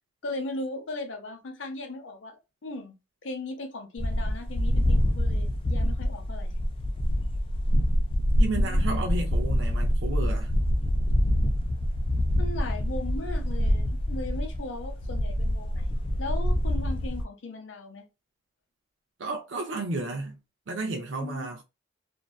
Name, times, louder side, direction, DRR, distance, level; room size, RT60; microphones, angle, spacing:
voice 1, 0.2-2.9 3.2-6.5 8.5-8.8 12.4-18.0 21.2-21.5, left 2 dB, 85° left, 0.7 m, -38 dB
sound 1, 4.0-17.2, equal, 30° left, 0.3 m, -26 dB
voice 2, 8.4-10.5 19.2-20.4 20.7-21.6, right 2 dB, 80° right, 0.5 m, -32 dB
2.6 x 2.2 x 2.3 m
head